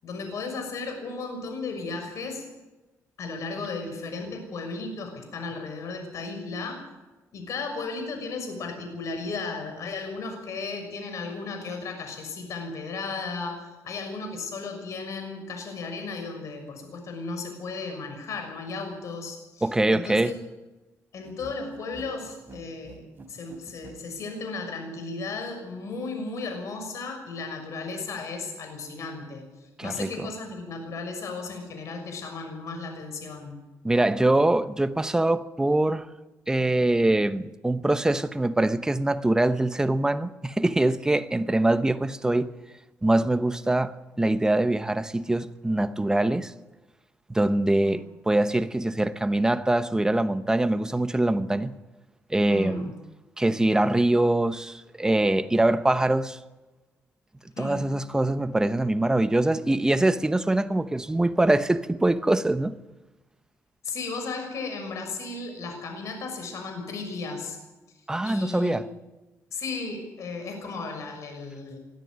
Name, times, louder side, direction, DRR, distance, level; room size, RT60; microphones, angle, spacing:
voice 1, 0.0-2.5 3.2-6.9 7.3-20.4 21.1-23.0 23.3-33.6 47.8-48.0 52.5-53.0 57.6-57.8 61.6-61.7 63.8-67.6 68.2-68.8 69.5-71.8, left 4 dB, 65° left, 6.3 m, -35 dB
voice 2, 19.6-20.3 29.8-30.3 33.8-36.1 36.5-42.5 43.0-46.5 47.3-51.7 52.3-52.9 53.4-56.4 57.6-62.8 68.1-68.9, right 2 dB, 10° right, 1.0 m, -23 dB
sound 1, 21.2-24.0, right 3 dB, 35° right, 4.2 m, -47 dB
21.5 x 13.0 x 9.6 m
cardioid pair, 105°, 6 cm